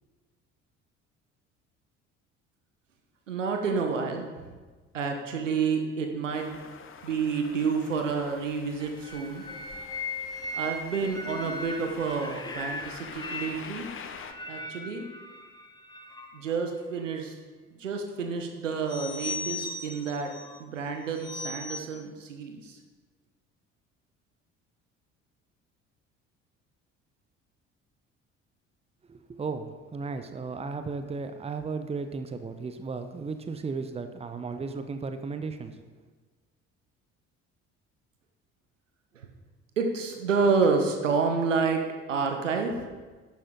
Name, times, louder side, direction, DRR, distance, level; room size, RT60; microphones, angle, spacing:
voice 1, 3.3-4.3 4.9-6.6 7.0-9.5 10.5-13.9 14.5-15.1 16.3-17.3 17.8-20.3 20.6-22.7 39.1-39.3 39.8-41.8 42.1-42.9, right 5 dB, 80° right, 4 dB, 1.2 m, -29 dB
sound 1, 6.3-14.3, left 6 dB, 35° left, 0.9 m, -46 dB
sound 2, 8.8-16.6 18.9-20.6 21.2-21.8, left 2 dB, 10° left, 1.1 m, -38 dB
voice 2, 29.1-35.8, right 4 dB, 15° right, 8 dB, 0.9 m, -35 dB
11.5 x 8.8 x 3.9 m, 1.3 s
figure-of-eight pair, 55°, 37 cm